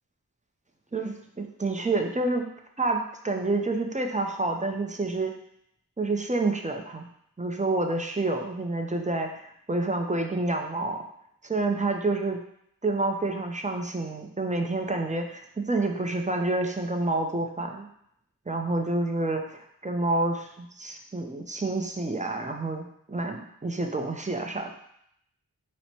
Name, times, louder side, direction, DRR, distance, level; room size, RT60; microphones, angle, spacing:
voice 1, 0.9-2.5 2.8-5.3 6.0-7.1 7.4-11.0 11.4-12.4 12.8-17.9 18.5-24.7, right 2 dB, 20° right, 3 dB, 0.4 m, -28 dB
4.2 x 2.1 x 4.3 m, 0.72 s
wide cardioid pair, 50°, 39 cm